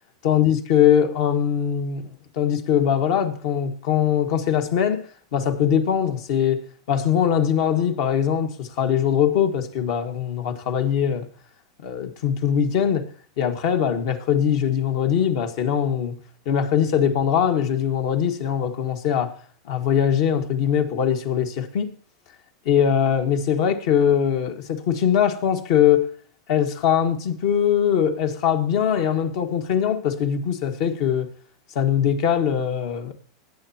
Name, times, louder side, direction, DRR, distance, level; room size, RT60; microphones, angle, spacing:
voice 1, 0.2-5.0 5.3-11.3 11.8-13.1 13.4-16.2 16.4-19.3 19.6-21.9 22.6-26.1 26.5-31.3 31.7-33.1, left 9 dB, 60° left, 1.7 m, -21 dB
18.5 x 9.7 x 2.9 m
hypercardioid pair, 105°, 2 cm